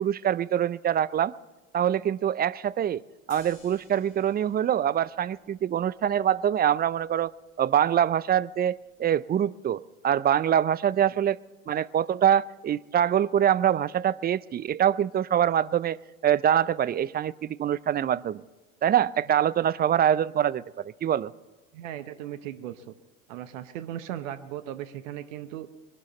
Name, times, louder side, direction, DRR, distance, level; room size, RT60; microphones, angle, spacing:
voice 1, 0.0-1.3 1.7-3.0 3.3-7.3 7.6-11.4 11.7-16.0 16.2-18.4 18.8-21.3, right 10 dB, 25° right, 19 dB, 0.5 m, -24 dB
sound 1, 3.3-9.3, left 3 dB, 70° left, 6.2 m, -58 dB
voice 2, 21.7-22.9 23.3-25.7, right 11 dB, 70° right, 11 dB, 1.0 m, -37 dB
22.5 x 12.0 x 4.1 m, 1.2 s
hypercardioid pair, 75°, 41 cm